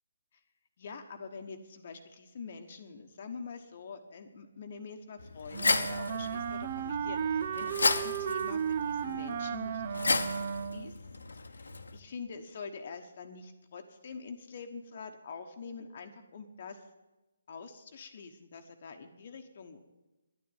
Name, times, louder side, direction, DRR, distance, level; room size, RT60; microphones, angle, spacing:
voice 1, 0.8-11.1 11.5-16.9 17.5-19.8, left 5 dB, 45° left, 5 dB, 1.1 m, -45 dB
sound 1, 5.2-12.0, left 3 dB, 70° left, 1.0 m, -34 dB
Wind instrument woodwind instrument, 5.5-11.0, right 7 dB, 40° right, 0.7 m, -34 dB
11.0 x 9.5 x 9.1 m, 1.1 s
figure-of-eight pair, 145°, 0 cm